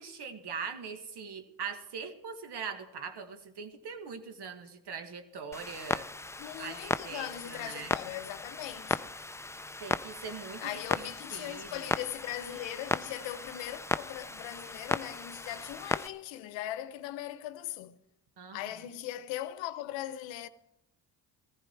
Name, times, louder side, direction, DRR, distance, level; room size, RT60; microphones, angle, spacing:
voice 1, 0.0-6.1 6.6-8.0 9.8-11.9 18.4-18.9, right 6 dB, 65° right, 1.8 m, -42 dB
Clock, 5.5-16.1, left 2 dB, 5° left, 0.4 m, -36 dB
voice 2, 6.4-9.1 10.6-18.0 18.5-20.5, left 13 dB, 90° left, 0.8 m, -39 dB
15.5 x 14.5 x 4.5 m
supercardioid pair, 65°, 44 cm